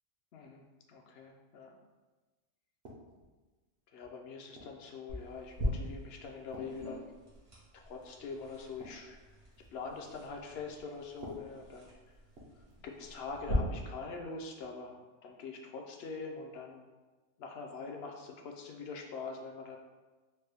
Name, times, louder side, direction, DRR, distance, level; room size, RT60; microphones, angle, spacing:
voice 1, 0.3-1.7 3.9-7.1 7.7-9.2 9.7-11.9 12.8-14.9 15.2-16.8 17.4-19.8, left 4 dB, 65° left, 2 dB, 0.7 m, -44 dB
sound 1, 2.8-3.4 4.0-4.9 5.5-5.8 6.5-7.7 8.0-8.2 8.6-9.9 11.1-12.9 13.2-13.5 14.6-14.8, equal, 60° right, 0.9 m, -53 dB
sound 2, 5.1-13.5, equal, 80° right, 1.6 m, -43 dB
4.3 x 2.1 x 3.3 m, 1.2 s
omnidirectional pair, 1.3 m